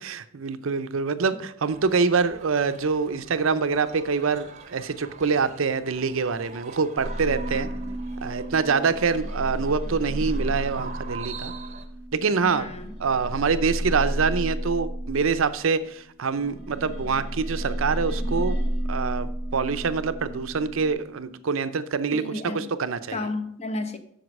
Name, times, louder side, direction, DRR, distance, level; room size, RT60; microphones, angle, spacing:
voice 1, 0.0-7.7 8.2-11.5 12.1-12.6 13.0-18.6 18.9-22.2 22.5-23.2, right 5 dB, 75° right, 0.6 m, -25 dB
sound 1, 1.7-11.9, right 5 dB, 35° right, 0.7 m, -44 dB
sound 2, 7.0-15.7 16.3-20.9, right 1 dB, 70° left, 3.7 m, -32 dB
voice 2, 7.5-8.0 12.4-12.9 22.1-22.7 23.1-24.0, left 2 dB, 30° left, 0.8 m, -33 dB
7.8 x 6.6 x 5.3 m
head